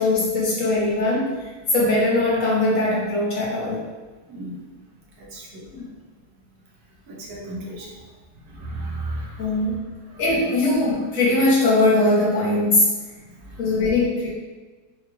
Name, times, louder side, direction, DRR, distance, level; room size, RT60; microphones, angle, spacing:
voice 1, 0.0-1.3 1.7-3.9 5.7-5.8 9.4-9.9 10.2-12.9 13.6-14.3, left 2 dB, 60° left, -4 dB, 1.0 m, -20 dB
voice 2, 5.3-5.6 7.1-7.9 8.6-9.6 13.6-13.7, right 2 dB, 85° right, -2 dB, 1.5 m, -34 dB
4.7 x 2.3 x 3.0 m, 1.3 s
omnidirectional pair, 1.9 m